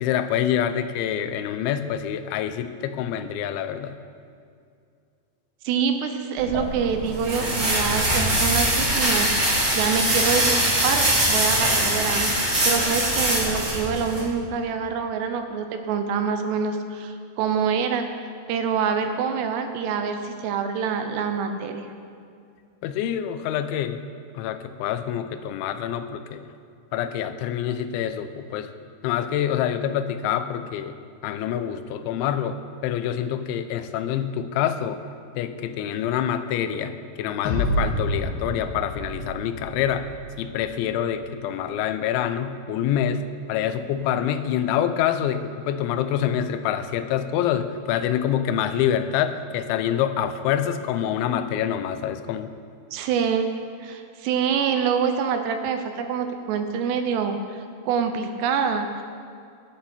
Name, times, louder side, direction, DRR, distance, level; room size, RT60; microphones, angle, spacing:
voice 1, 0.0-4.0 22.8-24.1 24.4-26.4 26.9-28.7 29.0-30.9 31.2-35.0 35.3-40.1 40.4-52.5, left 9 dB, 90° left, 10 dB, 3.1 m, -26 dB
voice 2, 5.6-10.6 10.8-12.3 12.7-18.1 18.5-21.8 52.9-53.5 53.8-59.0, right 6 dB, 75° right, 7 dB, 2.8 m, -26 dB
sound 1, 6.4-14.2, right 1 dB, 25° right, 2.5 m, -22 dB
sound 2, 37.5-40.7, equal, 70° left, 3.7 m, -29 dB
18.0 x 11.5 x 4.4 m, 2.4 s
omnidirectional pair, 5.2 m